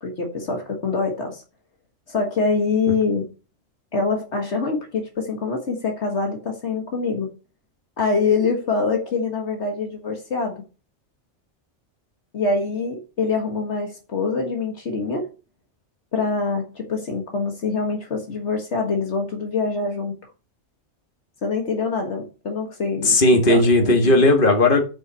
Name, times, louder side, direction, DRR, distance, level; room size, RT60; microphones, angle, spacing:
voice 1, 0.0-1.4 2.1-3.3 3.9-7.3 8.0-10.6 12.3-15.3 16.1-20.2 21.4-23.2 23.5-24.3, left 4 dB, 70° left, 1.8 m, -25 dB
voice 2, 23.0-24.8, left 2 dB, 45° left, 2.0 m, -16 dB
8.0 x 5.6 x 6.2 m
omnidirectional pair, 1.2 m